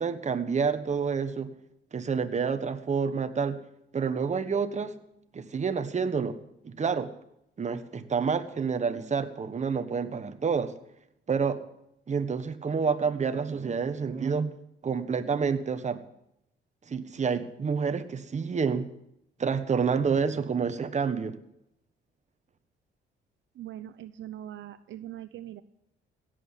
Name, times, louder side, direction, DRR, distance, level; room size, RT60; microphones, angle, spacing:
voice 1, 0.0-1.5 1.9-3.6 3.9-4.9 5.3-6.4 6.6-7.1 7.6-10.8 11.3-11.6 12.1-14.5 14.8-16.0 16.9-18.9 19.4-21.4, right 5 dB, 35° right, 10 dB, 1.4 m, -28 dB
voice 2, 23.6-25.6, right 12 dB, 70° right, 11 dB, 0.7 m, -41 dB
17.0 x 7.8 x 9.8 m, 0.81 s
cardioid pair, 90°, 20 cm